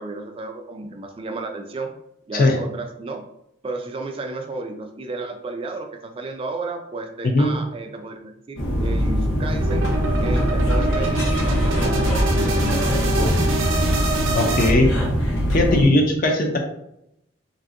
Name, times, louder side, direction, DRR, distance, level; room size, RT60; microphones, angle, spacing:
voice 1, 0.0-1.9 2.3-3.3 3.6-9.9 10.2-13.3, right 3 dB, 30° right, 4 dB, 0.3 m, -33 dB
sound 1, 8.6-15.8, equal, 85° left, 0.9 m, -21 dB
sound 2, 9.6-14.7, right 3 dB, 80° right, 0.5 m, -26 dB
voice 2, 14.3-15.0 15.5-16.6, left 1 dB, 45° left, 2 dB, 0.4 m, -18 dB
3.2 x 2.6 x 2.5 m, 0.79 s
head